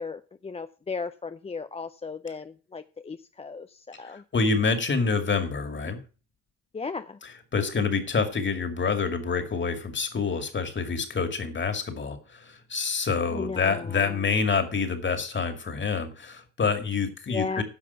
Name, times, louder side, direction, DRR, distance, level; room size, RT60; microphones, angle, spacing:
voice 1, 0.0-4.2 6.7-7.2 13.3-14.2 17.3-17.6, left 4 dB, 20° left, 10 dB, 0.5 m, -35 dB
voice 2, 4.1-6.0 7.2-17.6, left 5 dB, 40° left, 8 dB, 2.3 m, -27 dB
10.5 x 5.8 x 6.9 m, 0.36 s
cardioid pair, 90°, 30 cm